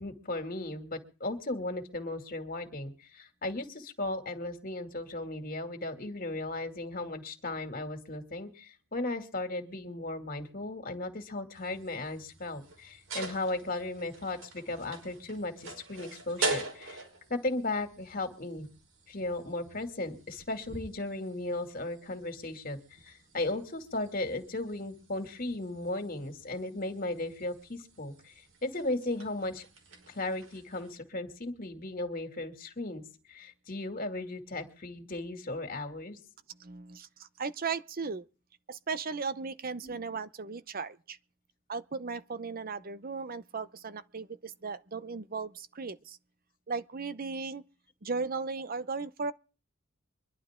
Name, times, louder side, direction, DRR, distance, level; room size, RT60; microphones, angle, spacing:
voice 1, 0.0-17.0 17.3-18.7 19.1-28.3 28.6-29.7 30.1-33.0 33.3-36.2 39.8-40.0, left 2 dB, 45° left, 2.6 m, -36 dB
sound 1, 11.5-30.9, right 3 dB, 75° right, 5.2 m, -43 dB
voice 2, 36.5-38.2 38.7-41.2 41.7-46.2 46.7-47.6 48.0-49.3, right 4 dB, 45° right, 0.8 m, -36 dB
24.0 x 12.0 x 3.7 m
head